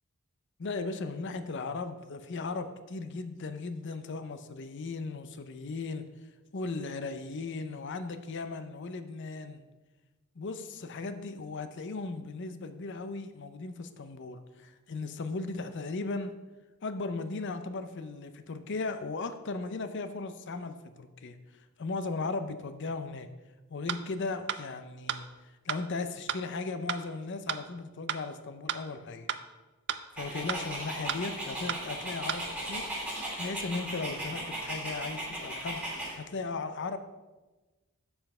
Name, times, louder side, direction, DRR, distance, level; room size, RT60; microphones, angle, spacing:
voice 1, 0.6-6.1 6.5-9.6 10.4-16.3 16.8-23.3 23.7-29.3 30.1-32.9 33.4-37.0, left 3 dB, 55° left, 10 dB, 0.6 m, -37 dB
sound 1, 23.9-24.0 24.5-24.6 25.1-25.2 25.7-25.8 26.3-26.4 26.9-27.0 27.5-27.6 28.1-28.2 28.7-28.8 29.3-29.4 29.9-30.0 30.5-30.6 31.1-31.2 31.7-31.8 32.3-32.4, right 10 dB, 50° right, 0.4 m, -32 dB
Dog, 30.2-36.1, right 1 dB, 5° right, 2.5 m, -37 dB
7.0 x 5.6 x 5.4 m, 1.2 s
head